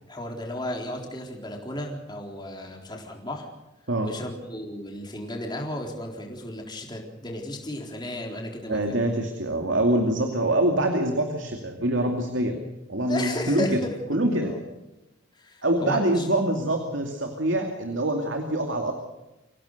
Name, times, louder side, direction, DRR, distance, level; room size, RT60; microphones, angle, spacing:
voice 1, 0.1-3.5 4.0-9.0 13.1-14.6 15.3-16.3, left 1 dB, 20° left, 1 dB, 3.9 m, -34 dB
voice 2, 8.7-12.6 12.9-13.8 14.1-14.5 15.6-18.9, right 1 dB, 75° right, 4 dB, 2.5 m, -25 dB
26.0 x 17.5 x 6.7 m, 0.99 s
head